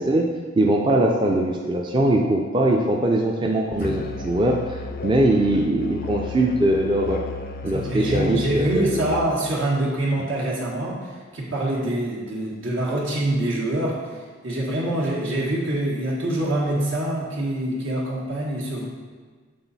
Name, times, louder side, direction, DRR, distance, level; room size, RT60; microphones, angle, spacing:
voice 1, 0.0-7.2 7.6-9.1, right 1 dB, 25° right, 0 dB, 0.4 m, -21 dB
Musical instrument, 3.8-9.4, left 5 dB, 45° left, 0.4 m, -34 dB
voice 2, 3.8-4.2 7.7-11.0 11.3-14.0 14.4-18.8, right 1 dB, 75° right, -4 dB, 1.6 m, -25 dB
7.9 x 3.9 x 4.1 m, 1.5 s
head